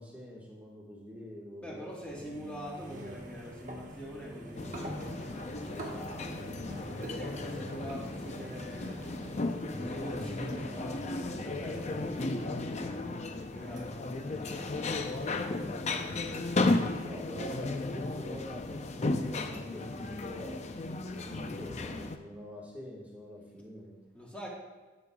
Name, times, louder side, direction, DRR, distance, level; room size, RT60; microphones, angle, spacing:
voice 1, 0.0-1.9 16.7-20.6 21.1-24.0, equal, 10° right, -4 dB, 1.4 m, -45 dB
voice 2, 1.6-6.4 7.0-9.4 9.7-15.3 24.1-24.5, equal, 5° left, -5 dB, 1.4 m, -45 dB
sound 1, 2.0-14.0 14.3-19.3, right 1 dB, 40° right, 1.2 m, -46 dB
sound 2, 4.6-22.2, left 2 dB, 35° left, 0.5 m, -35 dB
12.0 x 8.4 x 2.3 m, 1.2 s
head